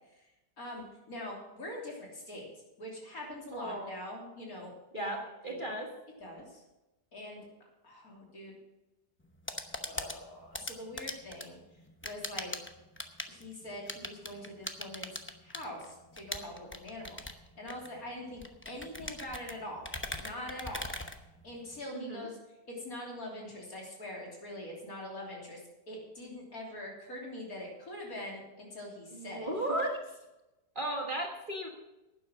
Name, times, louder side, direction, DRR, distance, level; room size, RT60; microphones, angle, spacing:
voice 1, 0.6-2.5 2.8-5.8 6.2-6.6 7.1-7.5 7.8-8.6 9.9-11.6 12.0-12.5 13.3-17.2 17.6-19.8 20.1-20.9 21.4-22.4 22.7-25.6 25.9-29.5, left 1 dB, 55° left, -2 dB, 3.7 m, -43 dB
voice 2, 3.5-3.9 4.9-5.9 21.9-22.3 29.1-30.1 30.7-31.7, right 1 dB, 30° right, 0 dB, 1.5 m, -35 dB
sound 1, 9.2-21.8, left 1 dB, 15° left, 0.4 m, -42 dB
11.5 x 9.6 x 6.2 m, 1.0 s
omnidirectional pair, 1.8 m